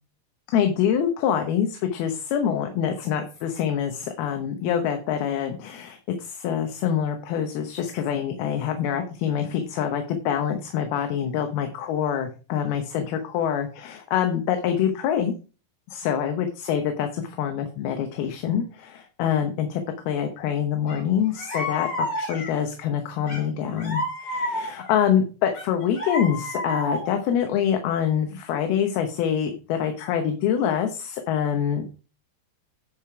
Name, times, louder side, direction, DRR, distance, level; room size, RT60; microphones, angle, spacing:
voice 1, 0.5-15.3 15.9-31.9, left 8 dB, 75° left, 5 dB, 2.8 m, -25 dB
sound 1, 20.9-21.0 21.3-22.7 23.3-25.0 25.5-27.3, left 1 dB, 40° left, 3.8 m, -30 dB
10.5 x 5.0 x 4.9 m, 0.35 s
omnidirectional pair, 4.6 m